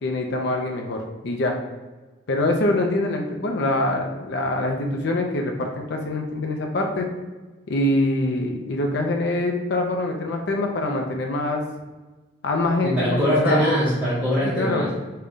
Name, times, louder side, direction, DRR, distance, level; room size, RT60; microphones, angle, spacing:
voice 1, 0.0-1.6 2.3-7.1 7.7-11.6 12.4-13.6 14.4-14.8, left 2 dB, 60° left, 2 dB, 0.5 m, -24 dB
voice 2, 12.8-15.0, equal, 10° right, -9 dB, 0.7 m, -22 dB
3.8 x 2.2 x 3.6 m, 1.2 s
head